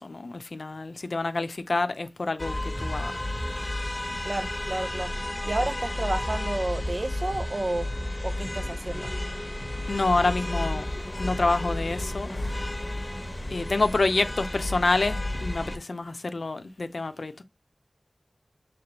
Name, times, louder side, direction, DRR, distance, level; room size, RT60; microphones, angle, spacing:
voice 1, 0.0-3.1 9.9-10.9 11.2-12.5 13.5-17.4, left 3 dB, 80° left, 0.5 m, -27 dB
sound 1, 2.4-15.8, left 1 dB, 35° left, 1.0 m, -32 dB
voice 2, 4.2-5.1 5.4-7.9 8.2-9.1, right 2 dB, 60° right, 0.5 m, -31 dB
5.1 x 3.4 x 2.9 m
wide cardioid pair, 50°, 0 cm